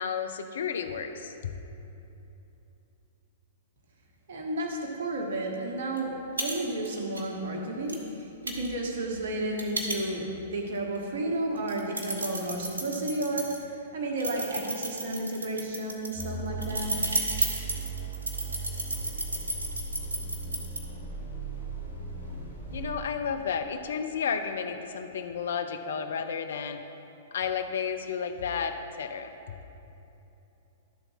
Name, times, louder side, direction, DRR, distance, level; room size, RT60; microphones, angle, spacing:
voice 1, 0.0-1.5 22.7-26.8 27.3-29.3, left 6 dB, 65° left, 7 dB, 0.5 m, -32 dB
voice 2, 4.3-17.1, right 1 dB, 60° right, 0 dB, 1.3 m, -32 dB
sound 1, 6.0-6.1 6.4-6.5 6.8-7.2 7.9-8.0 8.5-10.4 11.0-11.1 11.6-13.6 14.2-20.8, right 2 dB, 80° right, 1.3 m, -32 dB
sound 2, 16.1-22.9, right 3 dB, 85° left, 1.8 m, -37 dB
12.0 x 4.0 x 5.7 m, 3.0 s
figure-of-eight pair, 110°, 0 cm